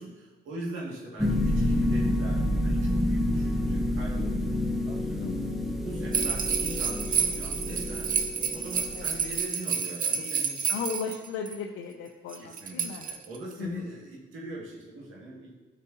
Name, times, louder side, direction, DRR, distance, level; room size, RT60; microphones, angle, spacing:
voice 1, 0.0-4.5 4.8-5.3 5.8-8.1 8.5-11.1 12.3-15.5, right 1 dB, 80° right, -5 dB, 2.1 m, -42 dB
sound 1, 1.2-9.4, left 1 dB, ahead, 0.9 m, -28 dB
sound 2, 6.1-11.5 12.3-13.5, right 6 dB, 45° right, 0.7 m, -29 dB
voice 2, 10.7-13.1 13.6-13.8, left 5 dB, 90° left, 2 dB, 0.6 m, -36 dB
10.5 x 5.0 x 2.8 m, 1.3 s
cardioid pair, 90°, 20 cm